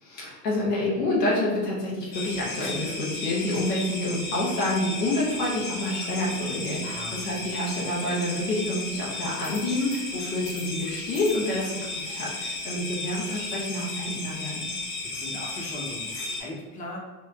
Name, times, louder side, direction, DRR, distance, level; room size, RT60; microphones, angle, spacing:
voice 1, 0.0-14.7, left 1 dB, 80° left, -5 dB, 1.4 m, -28 dB
sound 1, 2.1-16.4, left 3 dB, 60° left, 1.3 m, -34 dB
voice 2, 6.8-7.5 15.1-17.0, left 1 dB, 15° left, -2 dB, 0.8 m, -39 dB
3.4 x 2.6 x 3.4 m, 1.2 s
hypercardioid pair, 75°, 47 cm